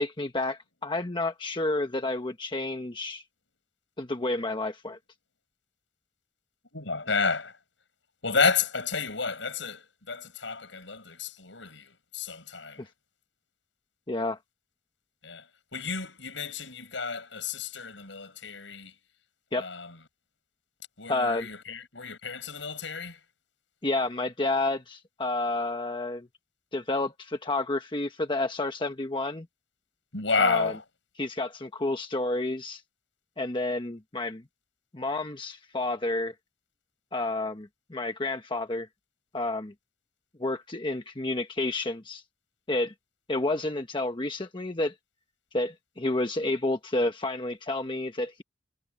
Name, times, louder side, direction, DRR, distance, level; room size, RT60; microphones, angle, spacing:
voice 1, 0.0-3.2 4.0-5.0 14.1-14.4 19.5-19.7 21.1-21.5 23.8-26.3 26.7-29.5 30.4-30.7 31.2-32.8 33.4-34.4 34.9-36.3 37.1-38.9 39.3-39.7 40.4-42.2 42.7-42.9 43.3-44.9 45.5-48.4, left 2 dB, 25° left, 1.2 m, -30 dB
voice 2, 6.7-7.6 8.2-12.8 15.2-18.9 19.5-20.0 21.0-23.2 30.1-30.8, left 4 dB, 75° left, 7.3 m, -31 dB
head